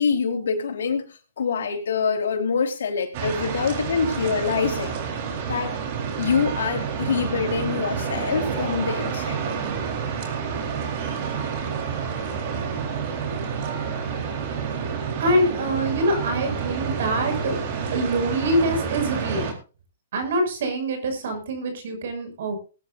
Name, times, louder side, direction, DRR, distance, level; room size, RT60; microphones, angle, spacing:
voice 1, 0.0-5.0 5.5-5.8 6.2-9.5, left 5 dB, 80° left, 3.8 m, -25 dB
sound 1, 3.1-19.5, right 6 dB, 50° right, 4.0 m, -29 dB
voice 2, 15.2-17.6 17.9-19.5 20.1-22.6, right 1 dB, 65° right, 6.2 m, -24 dB
21.0 x 10.5 x 2.6 m
hypercardioid pair, 140°, 0 cm